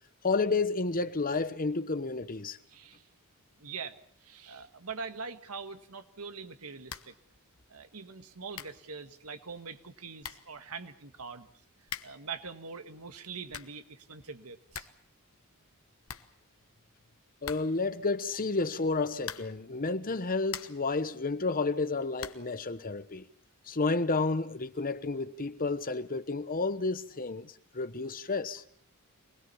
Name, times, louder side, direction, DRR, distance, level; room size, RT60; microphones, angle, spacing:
voice 1, 0.2-2.6 17.4-23.2 23.7-28.6, left 3 dB, 40° left, 1.1 m, -31 dB
voice 2, 2.7-3.1 3.6-7.1 7.7-11.5 11.8-14.9, right 5 dB, 80° right, 1.8 m, -43 dB
sound 1, 6.9-7.2 7.5-7.6 8.2-8.3 8.5-8.9 9.8-9.9 10.2-10.6 11.8-12.3 13.2-13.9 14.2-14.3 14.5-15.1 15.3-15.4 15.7-15.8 16.0-16.8 17.4-17.9 19.2-19.7 20.2-20.9 22.2-22.6, left 8 dB, 65° left, 1.3 m, -43 dB
25.5 x 20.0 x 7.1 m
head